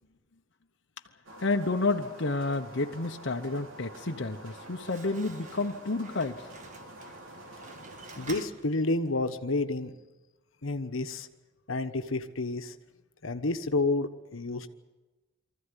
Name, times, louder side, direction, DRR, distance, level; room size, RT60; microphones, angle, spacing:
sound 1, 1.2-8.4, right 1 dB, 90° right, 2.8 m, -48 dB
voice 1, 1.4-6.5, left 3 dB, 60° left, 3 dB, 1.0 m, -30 dB
Slam, 4.3-9.3, right 3 dB, 40° right, 1.6 m, -49 dB
voice 2, 8.2-9.9 10.6-11.3 11.7-12.8 13.2-14.7, left 2 dB, 85° left, 7 dB, 1.2 m, -30 dB
24.0 x 14.5 x 9.9 m, 1.1 s
head